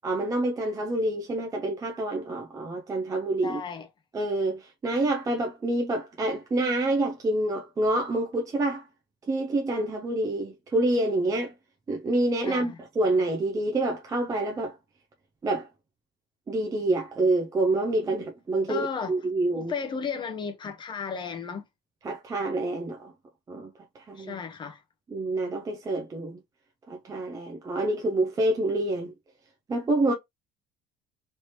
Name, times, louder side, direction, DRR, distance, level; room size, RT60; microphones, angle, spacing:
voice 1, 0.0-3.6 4.1-8.9 9.3-11.5 11.9-14.7 15.4-15.7 16.5-19.7 22.0-23.1 23.5-24.4 25.1-26.4 26.9-29.1 29.7-30.1, right 2 dB, 15° right, 0.4 m, -27 dB
voice 2, 3.4-3.9 12.5-12.8 18.7-19.1 19.5-21.6 24.2-24.8, left 5 dB, 20° left, 0.7 m, -34 dB
3.2 x 2.8 x 3.0 m
cardioid pair, 160°, 21 cm